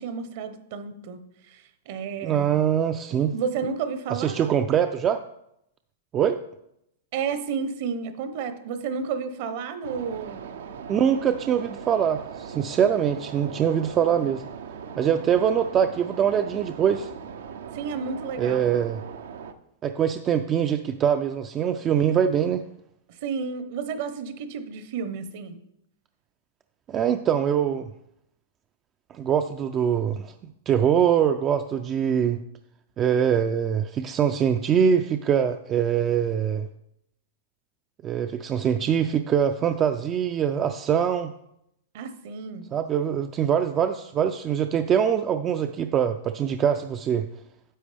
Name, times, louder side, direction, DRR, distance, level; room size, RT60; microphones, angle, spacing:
voice 1, 0.0-2.5 3.3-4.6 7.1-10.4 17.7-18.8 23.1-25.6 41.9-42.6, right 6 dB, 55° right, 9 dB, 1.0 m, -32 dB
voice 2, 2.2-3.3 4.1-5.2 6.1-6.4 10.9-14.4 15.0-17.1 18.4-19.0 19.8-22.7 26.9-27.9 29.1-30.3 30.7-32.4 33.0-36.7 38.0-41.3 42.7-47.3, right 8 dB, 25° right, 8 dB, 0.4 m, -23 dB
sound 1, 9.8-19.5, right 7 dB, 75° right, 0.7 m, -39 dB
10.0 x 7.2 x 3.4 m, 0.78 s
hypercardioid pair, 145°, 0 cm